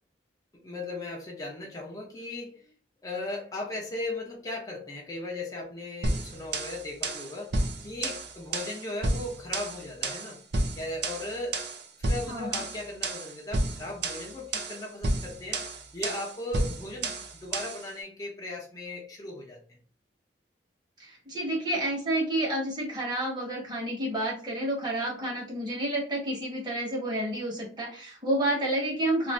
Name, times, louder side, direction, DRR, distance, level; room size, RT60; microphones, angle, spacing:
voice 1, 0.6-2.7 3.0-10.4 10.8-11.7 12.0-19.8 25.2-25.3, left 2 dB, 20° left, -2 dB, 0.6 m, -37 dB
sound 1, 6.0-17.9, right 2 dB, 65° right, 0.5 m, -31 dB
voice 2, 12.3-12.6 21.0-29.3, right 1 dB, 25° right, -4 dB, 1.2 m, -30 dB
2.6 x 2.5 x 3.1 m, 0.41 s
head